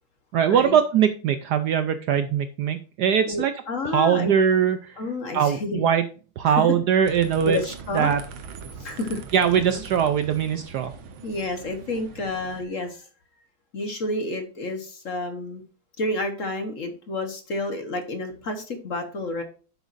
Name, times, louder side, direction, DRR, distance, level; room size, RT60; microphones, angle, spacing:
voice 1, 0.3-3.5 3.8-5.0 5.3-6.0 6.4-7.6 7.9-8.2 9.3-10.9, right 8 dB, 70° right, 9 dB, 1.0 m, -21 dB
voice 2, 3.3-4.3 5.0-5.9 7.4-8.1 8.8-9.2 9.7-9.8 11.2-13.1 13.7-15.6 16.0-19.4, left 2 dB, 45° left, 6 dB, 1.3 m, -30 dB
sound 1, 7.0-12.7, right 5 dB, 85° right, 1.8 m, -41 dB
10.0 x 8.2 x 2.5 m, 0.37 s
omnidirectional pair, 2.2 m